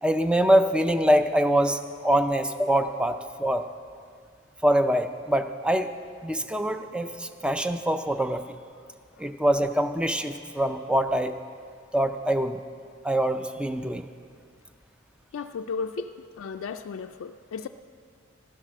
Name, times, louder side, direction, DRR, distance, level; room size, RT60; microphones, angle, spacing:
voice 1, 0.0-3.7 4.6-5.9 6.2-8.4 9.2-11.4 11.9-12.6 13.0-14.1, right 1 dB, 5° right, 8 dB, 0.5 m, -24 dB
voice 2, 15.3-16.1 16.4-17.7, left 5 dB, 80° left, 6 dB, 0.4 m, -34 dB
13.0 x 10.5 x 6.3 m, 2.2 s
head